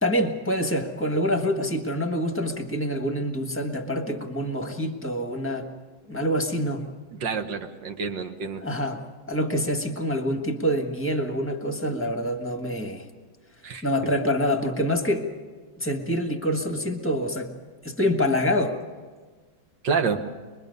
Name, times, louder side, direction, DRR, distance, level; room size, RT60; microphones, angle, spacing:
voice 1, 0.0-5.7 6.1-6.9 8.6-13.1 13.8-15.3 15.8-17.5 17.8-18.8, equal, 10° left, 5 dB, 1.2 m, -26 dB
voice 2, 7.2-8.6 13.6-13.8 19.8-20.2, right 5 dB, 70° right, 7 dB, 1.7 m, -28 dB
24.5 x 21.5 x 5.4 m, 1.4 s
omnidirectional pair, 2.1 m